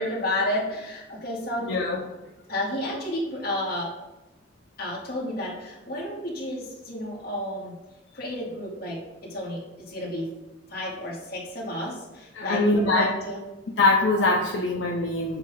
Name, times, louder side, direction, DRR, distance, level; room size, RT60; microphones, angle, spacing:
voice 1, 0.0-1.7 2.5-4.0 4.8-7.8 8.1-10.3 10.7-13.4, left 1 dB, 55° left, -5 dB, 2.3 m, -31 dB
voice 2, 1.7-2.0 12.3-13.1 13.8-15.4, left 2 dB, 85° left, -1 dB, 0.8 m, -22 dB
8.1 x 2.8 x 5.4 m, 1.0 s
head